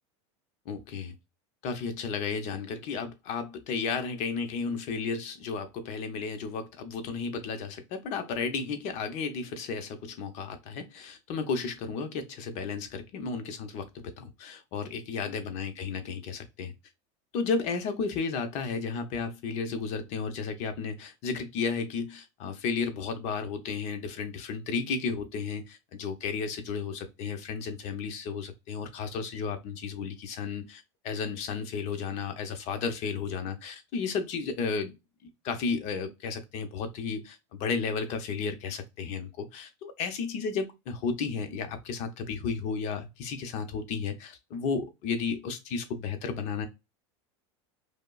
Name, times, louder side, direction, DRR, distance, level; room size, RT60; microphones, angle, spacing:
voice 1, 0.7-1.2 1.6-16.7 17.3-34.9 35.2-46.7, left 5 dB, 50° left, 0.7 m, -33 dB
5.0 x 2.1 x 2.3 m
supercardioid pair, 140°, 15 cm